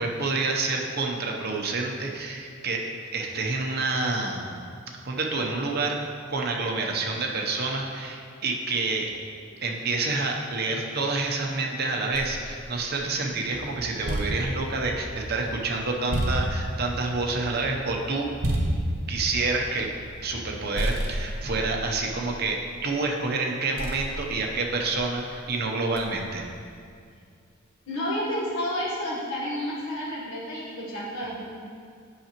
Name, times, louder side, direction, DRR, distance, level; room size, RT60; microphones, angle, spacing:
voice 1, 0.0-2.8 3.1-4.5 5.0-6.0 6.3-9.1 9.6-18.3 19.1-19.9 20.2-26.4, right 3 dB, 50° right, 1 dB, 0.7 m, -28 dB
sound 1, 12.1-13.4 13.8-20.5 20.8-23.0 23.8-25.2 26.0-26.4, right 1 dB, 75° right, 1.0 m, -32 dB
sound 2, 13.5-21.2, equal, ahead, 0.4 m, -43 dB
voice 2, 27.9-31.4, equal, 75° left, -5 dB, 1.2 m, -30 dB
8.5 x 5.8 x 2.9 m, 2.2 s
head